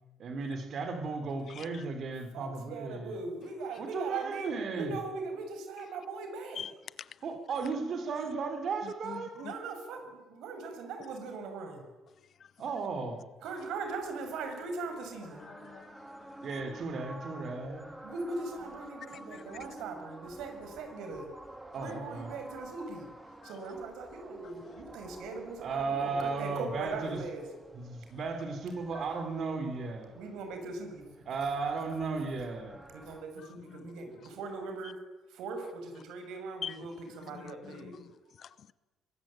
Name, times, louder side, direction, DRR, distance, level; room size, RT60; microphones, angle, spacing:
voice 1, 0.2-3.2 3.8-4.9 7.2-9.3 12.6-13.2 16.4-17.8 21.7-22.3 25.6-27.2 27.7-30.1 31.3-32.8, right 4 dB, 40° right, 3.4 m, -35 dB
voice 2, 1.5-1.8 6.6-6.7 7.0-7.2 8.8-9.5 12.4-12.5 15.4-16.5 19.1-19.6 23.4-23.5 33.4-33.9 36.6-36.9 37.2-38.1 38.4-38.7, left 8 dB, 40° left, 0.8 m, -45 dB
voice 3, 2.3-6.7 9.3-11.8 13.4-15.4 16.3-16.4 18.0-21.3 21.8-23.1 23.4-27.4 30.1-31.1 32.9-35.0 35.3-37.9, right 3 dB, 85° right, 6.3 m, -40 dB
sound 1, 13.4-33.2, right 1 dB, 5° right, 2.2 m, -51 dB
23.5 x 20.5 x 8.9 m
cardioid pair, 175°, 0 cm